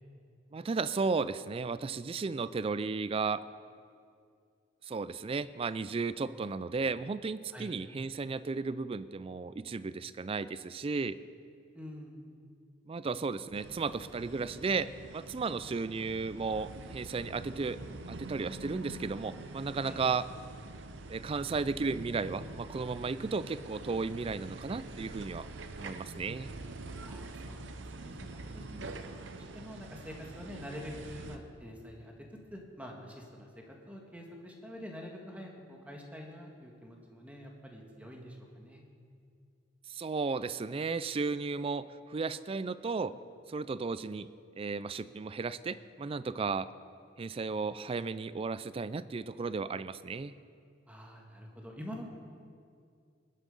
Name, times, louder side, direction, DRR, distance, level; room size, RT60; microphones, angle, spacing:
voice 1, 0.5-3.4 4.9-11.2 12.9-17.8 18.1-20.3 21.1-25.5 25.8-26.5 39.9-43.1 43.5-44.3 44.6-46.7 47.2-50.3, right 4 dB, 30° right, 16 dB, 0.3 m, -34 dB
voice 2, 11.7-12.3 19.9-20.0 27.0-28.9 29.3-32.1 32.5-38.8 50.9-52.1, equal, 10° right, 0 dB, 1.6 m, -46 dB
sound 1, 13.5-31.4, right 2 dB, 70° right, 0.8 m, -45 dB
20.0 x 8.4 x 5.4 m, 2.3 s
head